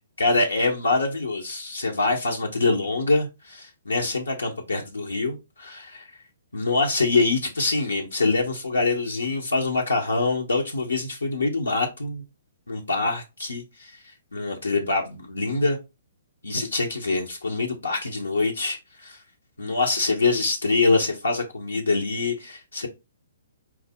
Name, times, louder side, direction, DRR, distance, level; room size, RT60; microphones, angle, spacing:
voice 1, 0.2-6.0 6.5-12.2 12.7-15.8 16.4-19.2 19.6-22.9, left 3 dB, 85° left, 0.8 m, -25 dB
4.6 x 2.0 x 3.5 m
figure-of-eight pair, 130°, 0 cm